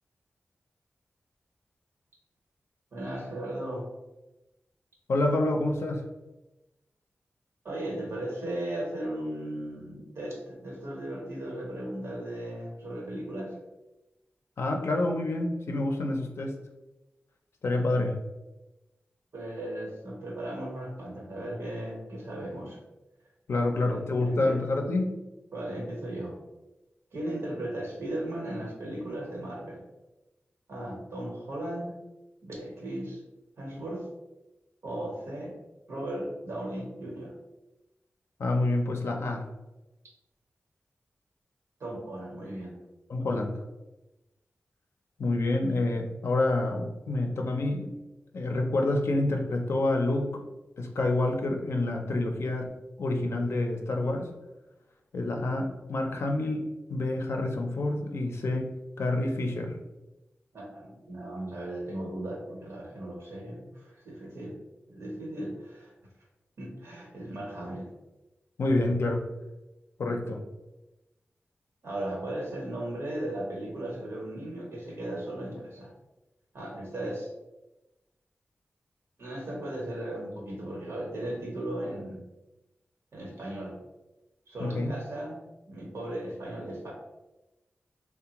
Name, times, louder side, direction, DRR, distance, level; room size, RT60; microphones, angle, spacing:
voice 1, 2.9-3.9 7.6-13.6 17.9-18.1 19.3-22.8 23.8-24.6 25.5-26.4 27.1-29.8 30.7-32.0 32.4-33.2 33.6-34.1 34.8-35.5 35.9-37.3 41.8-42.8 60.5-64.6 64.9-65.9 66.6-67.9 71.8-75.9 76.5-77.3 79.2-82.2 83.1-83.8 84.5-85.4 85.7-86.9, right 1 dB, 85° right, -3 dB, 1.0 m, -36 dB
voice 2, 5.1-6.0 14.6-16.6 17.6-18.2 23.5-25.1 38.4-39.4 43.1-43.6 45.2-47.9 48.3-50.4 50.8-52.7 53.0-54.3 55.1-59.8 68.6-69.3 70.0-70.4 84.6-84.9, left 2 dB, 75° left, 3 dB, 0.5 m, -28 dB
3.3 x 2.1 x 2.9 m, 1.0 s
wide cardioid pair, 90°, 4 cm